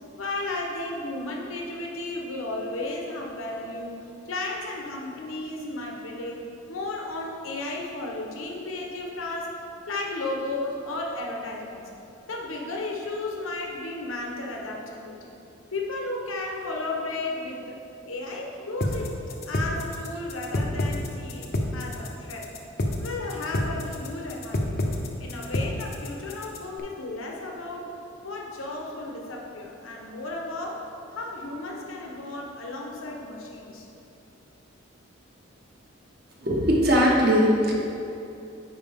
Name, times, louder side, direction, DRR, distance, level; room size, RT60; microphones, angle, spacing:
voice 1, 0.2-9.6 9.9-11.9 12.3-15.3 15.7-22.5 23.0-24.8 25.2-28.0 28.2-30.9 31.1-33.9, left 2 dB, 80° left, 0 dB, 1.0 m, -34 dB
sound 1, 18.8-26.8, left 1 dB, 45° left, 0.6 m, -28 dB
voice 2, 36.4-37.7, equal, 50° right, -3 dB, 1.2 m, -20 dB
9.8 x 4.7 x 3.6 m, 2.8 s
head